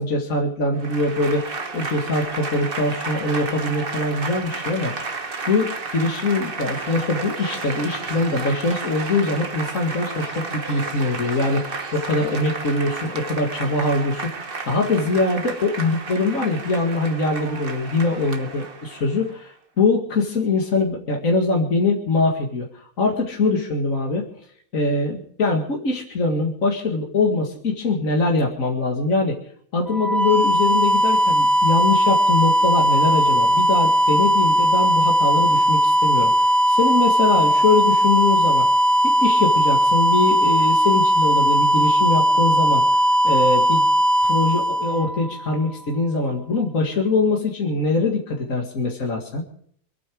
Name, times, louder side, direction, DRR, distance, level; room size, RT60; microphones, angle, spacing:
voice 1, 0.0-22.7 23.0-24.3 24.7-29.4 29.7-38.7 39.0-42.8 43.2-43.8 44.2-49.4, left 3 dB, 70° left, 0 dB, 2.4 m, -23 dB
Applause / Crowd, 0.8-19.3, right 4 dB, 40° right, 1.5 m, -32 dB
sound 1, 29.9-45.7, equal, ahead, 0.9 m, -18 dB
26.5 x 9.3 x 4.8 m, 0.64 s
omnidirectional pair, 1.5 m